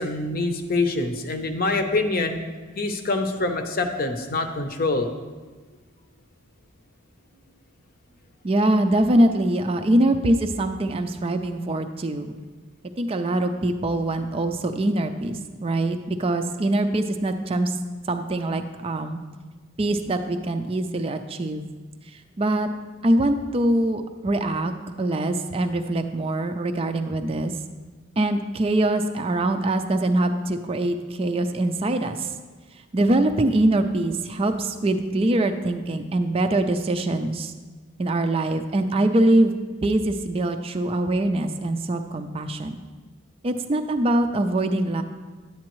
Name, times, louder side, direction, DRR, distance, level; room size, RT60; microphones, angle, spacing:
voice 1, 0.0-2.4 2.8-5.1, left 2 dB, 45° left, 6 dB, 0.7 m, -25 dB
voice 2, 8.4-12.3 13.0-17.8 18.1-19.2 19.8-21.7 22.1-22.7 23.0-27.5 28.2-32.3 32.9-37.5 38.0-39.5 39.8-42.8 43.4-45.0, right 1 dB, 30° right, 6 dB, 0.4 m, -23 dB
10.0 x 8.5 x 3.1 m, 1.3 s
head